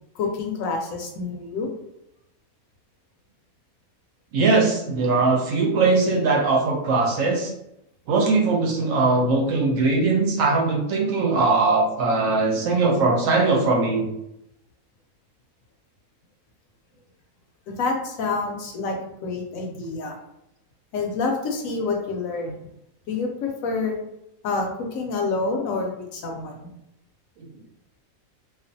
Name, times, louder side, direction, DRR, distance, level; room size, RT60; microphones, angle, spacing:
voice 1, 0.1-1.7 17.7-20.2 20.9-22.7 23.1-24.0 24.4-26.7, left 3 dB, 70° left, 1 dB, 0.9 m, -28 dB
voice 2, 4.3-7.5 8.1-14.1, right 3 dB, 70° right, 0 dB, 0.9 m, -20 dB
2.4 x 2.4 x 2.5 m, 0.82 s
omnidirectional pair, 1.5 m